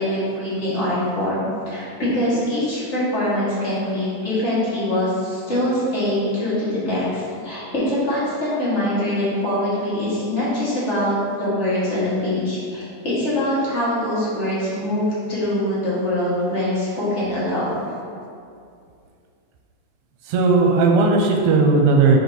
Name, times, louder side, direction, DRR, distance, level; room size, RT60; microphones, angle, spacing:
voice 1, 0.0-17.7, left 1 dB, 35° left, -10 dB, 1.2 m, -23 dB
voice 2, 20.3-22.2, right 3 dB, 80° right, 1 dB, 2.0 m, -16 dB
4.7 x 4.0 x 5.2 m, 2.4 s
omnidirectional pair, 3.5 m